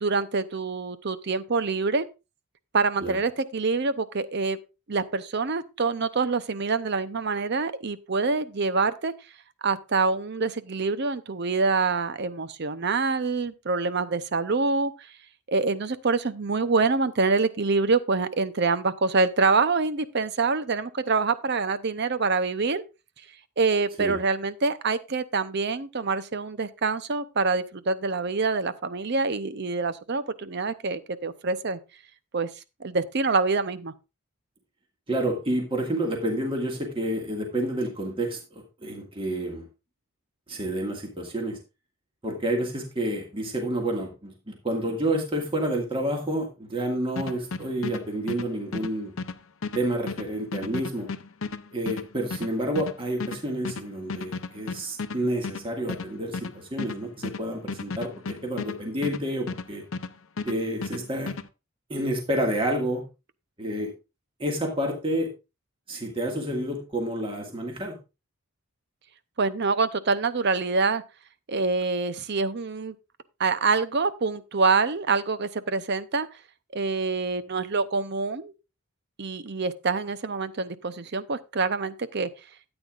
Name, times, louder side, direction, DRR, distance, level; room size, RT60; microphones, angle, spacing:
voice 1, 0.0-2.1 2.7-4.6 4.9-9.1 9.6-14.9 15.5-22.8 23.6-31.8 32.3-32.5 32.8-33.9 69.4-71.0 71.5-72.9 73.4-76.3 76.7-78.5 79.2-82.3, right 4 dB, 50° right, 0.7 m, -26 dB
voice 2, 35.1-39.6 40.5-41.6 42.2-49.1 49.7-51.1 51.7-59.8 60.4-61.4 61.9-63.1 63.6-63.9 64.4-65.3 65.9-68.0, right 1 dB, 25° right, 2.0 m, -29 dB
sound 1, 47.2-60.1 60.4-61.5, left 4 dB, 65° left, 0.7 m, -34 dB
13.0 x 8.9 x 2.5 m
head